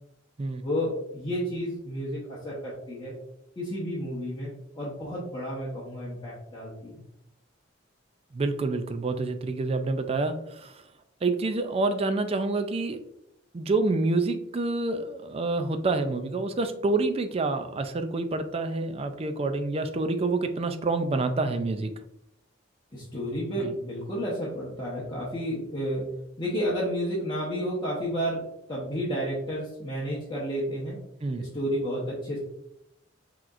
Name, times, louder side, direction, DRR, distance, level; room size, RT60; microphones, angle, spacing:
voice 1, 0.6-3.1 3.6-7.0 22.9-26.0 26.4-28.4 28.7-31.0 31.4-32.4, equal, 25° left, -7 dB, 0.9 m, -31 dB
voice 2, 8.3-10.8 11.2-13.0 13.5-21.9 23.6-23.8 31.2-31.5, right 3 dB, 30° right, 8 dB, 0.4 m, -27 dB
5.9 x 3.0 x 2.5 m, 0.79 s
head